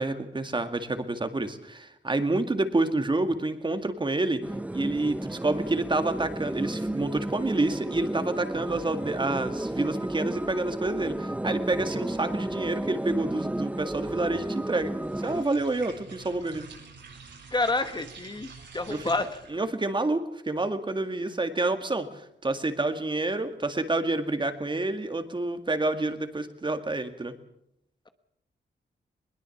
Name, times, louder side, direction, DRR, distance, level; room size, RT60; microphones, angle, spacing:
voice 1, 0.0-4.4 4.7-16.7 18.9-19.1 19.5-22.1 22.4-27.3, right 2 dB, 25° right, 8 dB, 2.1 m, -28 dB
sound 1, 4.4-15.4, right 1 dB, 10° right, 0.8 m, -33 dB
sound 2, 15.0-19.7, right 5 dB, 80° right, 7.9 m, -47 dB
voice 2, 17.5-19.4, left 2 dB, 25° left, 8 dB, 1.3 m, -29 dB
21.5 x 21.0 x 7.2 m, 0.76 s
wide cardioid pair, 120°, 18 cm